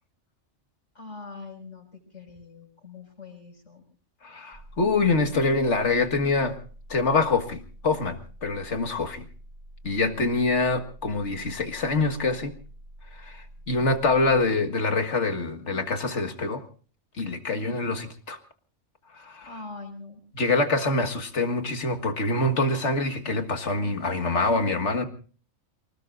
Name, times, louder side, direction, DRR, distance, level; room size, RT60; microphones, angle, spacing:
voice 1, 0.9-3.8 17.5-17.8 19.4-20.2, left 3 dB, 90° left, 1 dB, 7.1 m, -42 dB
voice 2, 4.2-6.6 6.9-9.3 9.8-12.6 13.1-16.6 17.2-18.4 19.1-19.5 20.3-25.0, left 3 dB, 70° left, 6 dB, 2.1 m, -25 dB
sound 1, 4.5-14.5, right 1 dB, 75° right, 4.4 m, -47 dB
29.0 x 19.5 x 2.5 m, 0.40 s
omnidirectional pair, 1.2 m